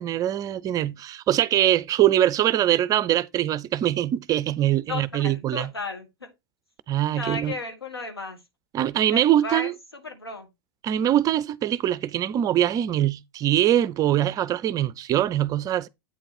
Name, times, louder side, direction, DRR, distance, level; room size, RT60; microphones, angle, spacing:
voice 1, 0.0-5.7 6.9-7.5 8.7-9.7 10.8-15.9, right 12 dB, 30° right, 0.4 m, -23 dB
voice 2, 4.9-6.3 7.1-8.4 9.1-10.5, left 2 dB, 90° left, 1.7 m, -34 dB
8.4 x 3.9 x 4.2 m
figure-of-eight pair, 95°, 13 cm